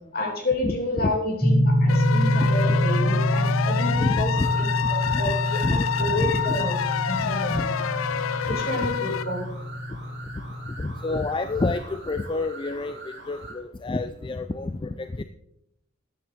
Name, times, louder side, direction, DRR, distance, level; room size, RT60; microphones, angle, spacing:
voice 1, 0.1-6.8 7.1-7.7 8.4-9.5, left 1 dB, 50° left, 0 dB, 2.9 m, -30 dB
sound 1, 1.4-11.2, equal, 5° left, 1.0 m, -25 dB
sound 2, 1.9-9.2, left 8 dB, 85° left, 0.5 m, -28 dB
voice 2, 2.4-2.8 4.0-4.5 5.1-5.3 5.6-5.8 6.2-6.6 7.5-7.6 8.5-8.9 10.7-13.0 13.3-15.2, left 3 dB, 25° left, 11 dB, 0.3 m, -29 dB
sound 3, 4.3-13.6, right 2 dB, 60° right, 3.1 m, -43 dB
12.5 x 10.5 x 3.6 m, 0.81 s
head